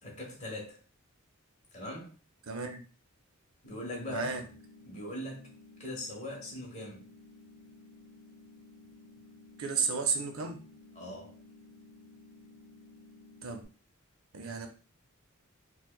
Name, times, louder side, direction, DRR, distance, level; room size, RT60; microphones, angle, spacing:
voice 1, 0.0-0.8 1.7-2.2 3.6-4.4 4.8-5.5 5.8-7.0 11.0-11.4, left 1 dB, 35° left, 1.2 m, -40 dB
voice 2, 2.5-2.8 4.1-4.4 9.6-10.6 13.4-13.6 14.3-14.7, right 5 dB, 75° right, 0.6 m, -32 dB
sound 1, 3.7-13.7, left 2 dB, 65° left, 0.7 m, -55 dB
4.4 x 2.3 x 2.3 m
head